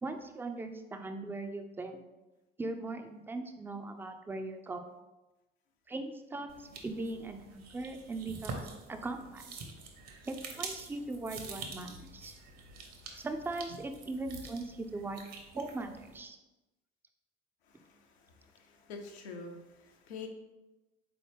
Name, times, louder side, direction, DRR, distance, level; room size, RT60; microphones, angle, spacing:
voice 1, 0.0-2.0 2.6-4.9 5.9-9.6 10.3-12.3 13.1-15.2 15.5-16.4, right 2 dB, 5° right, 6 dB, 0.3 m, -39 dB
sound 1, 6.5-16.2, right 3 dB, 55° right, 0.8 m, -46 dB
voice 2, 17.7-20.3, left 4 dB, 80° left, 2 dB, 0.6 m, -47 dB
4.0 x 3.0 x 3.3 m, 1.0 s
hypercardioid pair, 55°, 32 cm